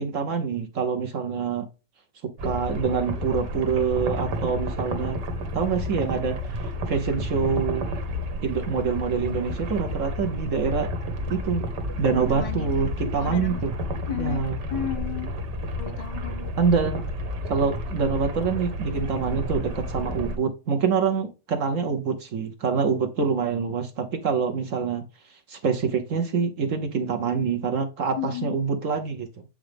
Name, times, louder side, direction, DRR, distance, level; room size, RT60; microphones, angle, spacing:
voice 1, 0.0-1.7 2.4-5.2 5.5-6.4 6.9-7.9 8.4-10.9 11.3-11.6 12.0-13.7 14.2-14.6 16.6-17.0 17.5-25.0 25.5-29.4, right 5 dB, 55° right, 1.0 m, -26 dB
sound 1, 2.4-20.4, equal, 75° right, 1.8 m, -31 dB
voice 2, 12.2-12.9 13.2-13.7 14.1-14.4 14.7-15.3 15.8-16.5 28.2-28.6, left 9 dB, 75° left, 1.6 m, -33 dB
7.7 x 4.9 x 3.4 m
omnidirectional pair, 1.9 m